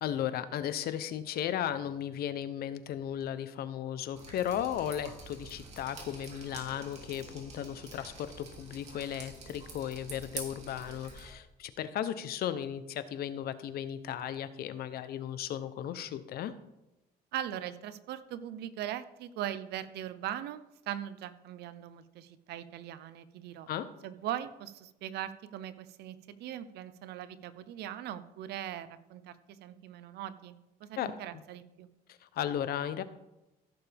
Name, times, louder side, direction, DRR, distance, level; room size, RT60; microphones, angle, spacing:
voice 1, 0.0-16.5 23.7-23.9 31.0-31.1 32.1-33.0, left 10 dB, 65° left, 13 dB, 0.8 m, -35 dB
Drip, 4.1-11.3, right 3 dB, 40° right, 2.9 m, -47 dB
voice 2, 17.3-23.7 24.0-31.9, right 11 dB, 75° right, 14 dB, 0.7 m, -40 dB
15.5 x 7.0 x 3.5 m, 0.95 s
cardioid pair, 110°, 17 cm